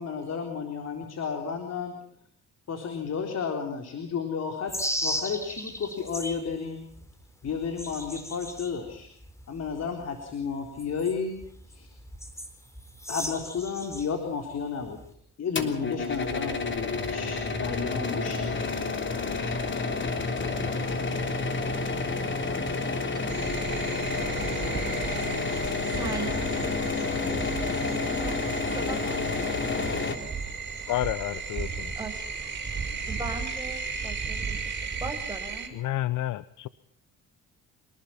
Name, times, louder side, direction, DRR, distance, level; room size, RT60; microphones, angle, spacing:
voice 1, 0.0-1.9 2.7-6.8 7.4-9.1 9.5-11.4 11.7-11.9 13.1-15.0 15.4-18.6, left 6 dB, 55° left, 4 dB, 4.0 m, -32 dB
sound 1, 4.7-6.5 6.9-14.1 14.5-15.1, equal, 10° left, 4.2 m, -36 dB
sound 2, 15.6-30.2, left 3 dB, 40° left, 3.4 m, -30 dB
sound 3, 23.3-35.7, right 4 dB, 35° right, 6.6 m, -35 dB
voice 2, 25.5-28.4 28.7-30.3 32.0-32.2 32.6-35.8, right 3 dB, 15° right, 3 dB, 6.8 m, -40 dB
voice 3, 30.9-31.9 35.7-36.7, left 14 dB, 80° left, 16 dB, 0.8 m, -30 dB
27.0 x 20.0 x 5.8 m, 0.65 s
cardioid pair, 90°, 30 cm